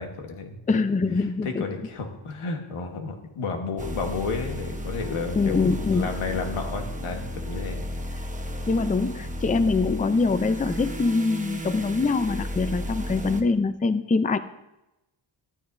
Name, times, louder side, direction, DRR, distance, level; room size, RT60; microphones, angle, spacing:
voice 1, 0.0-0.6 1.4-5.6 5.9-7.8, left 4 dB, 90° left, 3 dB, 1.5 m, -32 dB
voice 2, 0.7-1.7 5.4-6.1 8.7-14.4, left 3 dB, 15° left, 12 dB, 0.5 m, -24 dB
sound 1, 3.8-13.4, left 1 dB, 15° right, 1.0 m, -33 dB
13.0 x 12.5 x 2.7 m, 0.95 s
cardioid pair, 75°, 49 cm